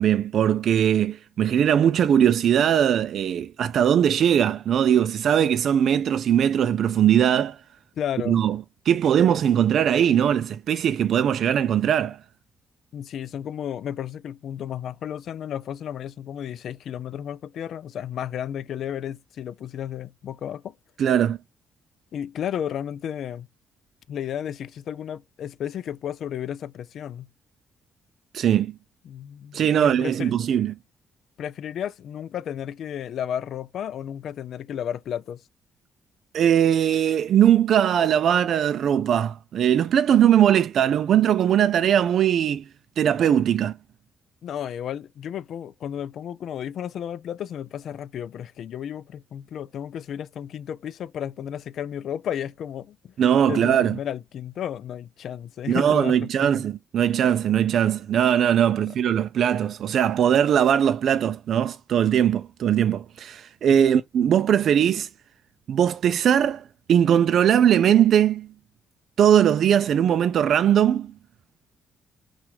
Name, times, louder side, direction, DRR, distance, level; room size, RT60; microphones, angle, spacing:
voice 1, 0.0-7.6 8.3-8.6 8.9-12.2 21.0-21.4 28.3-28.7 29.5-30.7 36.3-42.6 43.0-43.7 53.2-54.0 55.7-65.1 65.7-68.5 69.2-71.1, right 9 dB, 65° right, 0.3 m, -20 dB
voice 2, 8.0-8.4 12.9-20.7 22.1-23.5 24.1-27.3 29.0-30.3 31.4-35.4 44.4-53.1 53.5-56.6 58.9-59.0 63.7-63.9, left 9 dB, 70° left, 0.4 m, -33 dB
6.0 x 2.4 x 3.2 m
cardioid pair, 90°, 0 cm